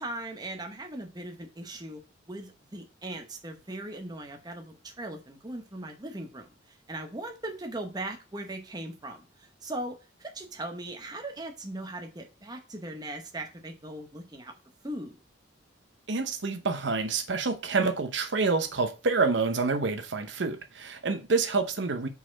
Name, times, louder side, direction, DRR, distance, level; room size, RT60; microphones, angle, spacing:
voice 1, 0.0-2.0 2.3-14.5 14.8-15.2, right 1 dB, 20° right, 0.8 m, -39 dB
voice 2, 16.1-22.1, right 4 dB, 60° right, 0.8 m, -27 dB
5.0 x 4.1 x 5.6 m
head